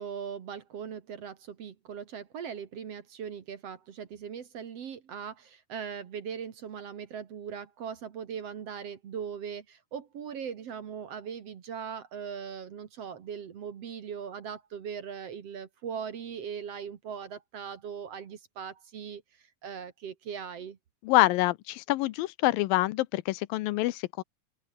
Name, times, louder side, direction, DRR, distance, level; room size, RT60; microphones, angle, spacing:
voice 1, 0.0-19.2 19.6-20.8, right 7 dB, 55° right, 2.3 m, -39 dB
voice 2, 21.0-24.2, left 18 dB, 90° left, 2.5 m, -26 dB
open air
omnidirectional pair, 4.0 m